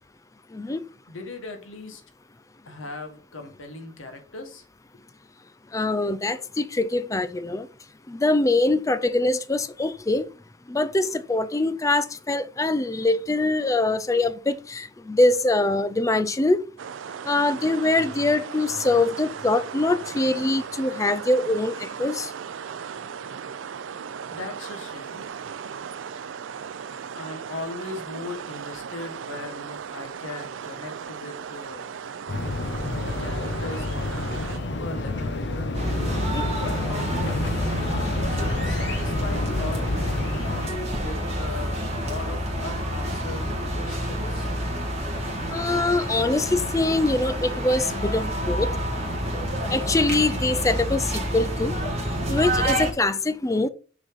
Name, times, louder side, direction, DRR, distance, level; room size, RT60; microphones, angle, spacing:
voice 1, 0.5-0.8 5.7-7.7 8.1-10.2 10.7-16.6 17.3-22.3 36.2-36.4 45.5-48.7 49.7-51.8 52.3-53.7, left 2 dB, 15° left, 0.4 m, -23 dB
voice 2, 1.1-2.0 2.6-4.6 24.3-25.3 27.1-31.9 33.0-35.4 36.5-37.7 38.0-44.5, left 2 dB, 85° left, 1.3 m, -38 dB
sound 1, 16.8-34.6, right 7 dB, 75° right, 0.4 m, -37 dB
sound 2, 32.3-40.7, left 2 dB, 60° left, 1.0 m, -29 dB
sound 3, 35.7-52.9, equal, 35° right, 1.8 m, -28 dB
6.2 x 4.1 x 4.9 m
head